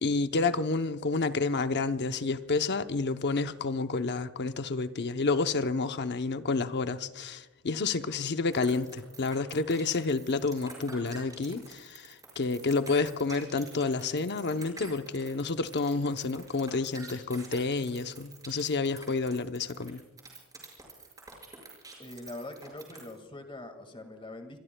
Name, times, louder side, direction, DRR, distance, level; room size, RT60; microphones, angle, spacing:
voice 1, 0.0-20.0, left 3 dB, 50° left, 0.7 m, -29 dB
sound 1, 8.5-23.2, right 3 dB, 15° right, 5.6 m, -47 dB
voice 2, 22.0-24.6, left 2 dB, 25° left, 1.9 m, -43 dB
27.0 x 22.5 x 2.3 m
head